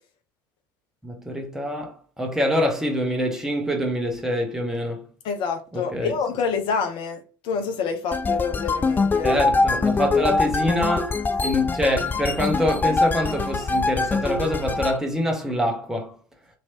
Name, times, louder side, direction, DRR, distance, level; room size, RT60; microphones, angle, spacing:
voice 1, 1.0-5.0 5.7-6.1 9.2-16.1, equal, 5° right, 0.9 m, -25 dB
voice 2, 5.2-7.2 7.4-9.3, left 5 dB, 50° left, 0.8 m, -27 dB
sound 1, 8.1-15.0, left 3 dB, 15° left, 0.4 m, -23 dB
2.9 x 2.9 x 2.8 m
figure-of-eight pair, 65°, 11 cm